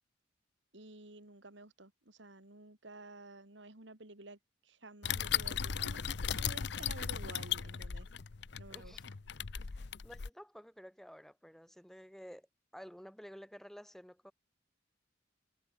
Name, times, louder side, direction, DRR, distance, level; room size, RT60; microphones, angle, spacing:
voice 1, 0.7-6.0 6.3-8.1 8.6-8.9, right 2 dB, 70° right, 3.1 m, -52 dB
sound 1, 5.0-10.3, left 8 dB, 60° left, 0.7 m, -37 dB
voice 2, 8.7-9.0 9.7-12.5 12.7-14.3, equal, ahead, 3.4 m, -52 dB
head